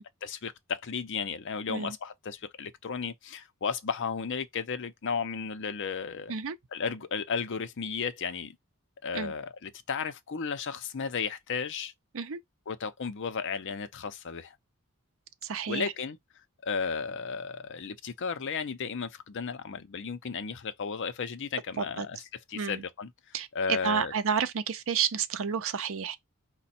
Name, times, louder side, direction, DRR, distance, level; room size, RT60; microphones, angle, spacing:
voice 1, 0.2-6.3 6.7-8.6 9.0-11.9 12.7-14.5 15.7-16.2 16.6-22.2 22.5-23.1 23.5-24.1, left 5 dB, 55° left, 0.6 m, -34 dB
voice 2, 15.4-15.9 21.8-22.1 22.5-22.8 23.3-26.2, right 6 dB, 65° right, 0.6 m, -30 dB
5.1 x 2.2 x 4.2 m
head